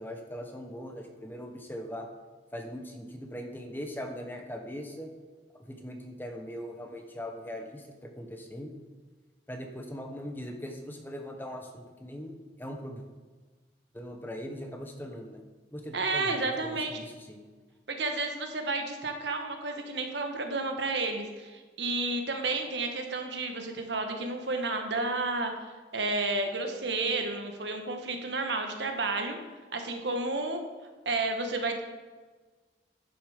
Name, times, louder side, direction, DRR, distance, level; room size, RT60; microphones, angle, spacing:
voice 1, 0.0-2.1 2.5-5.1 5.7-8.7 9.5-13.0 13.9-15.4 15.7-16.4 16.6-17.4, equal, 10° left, 3 dB, 1.0 m, -40 dB
voice 2, 15.9-17.0 17.9-25.5 25.9-29.4 29.7-30.6 31.0-31.8, right 3 dB, 80° right, 4 dB, 1.4 m, -31 dB
11.5 x 7.0 x 5.0 m, 1.4 s
head